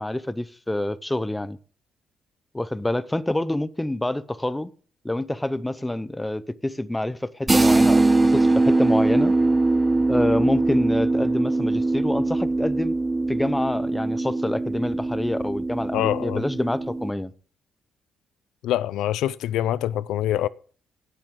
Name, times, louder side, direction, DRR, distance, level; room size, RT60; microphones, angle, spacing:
voice 1, 0.0-1.6 2.5-4.7 5.0-9.3 10.1-13.0 13.3-17.3, left 1 dB, 10° left, 0.7 m, -27 dB
sound 1, 7.5-17.1, right 2 dB, 20° right, 0.5 m, -22 dB
voice 2, 15.9-16.4 18.6-20.5, left 12 dB, 85° left, 0.4 m, -25 dB
17.0 x 7.6 x 3.7 m
cardioid pair, 90°, 0 cm